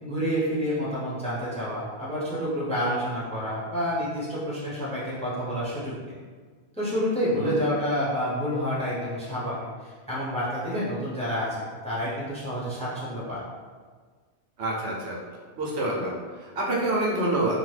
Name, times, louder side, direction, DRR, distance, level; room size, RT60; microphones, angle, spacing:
voice 1, 0.0-6.2 6.7-9.6 9.8-13.4, equal, 5° left, -8 dB, 0.6 m, -29 dB
voice 2, 14.6-15.2 15.6-17.6, right 1 dB, 80° right, -3 dB, 0.9 m, -27 dB
2.7 x 2.1 x 3.2 m, 1.5 s
omnidirectional pair, 1.1 m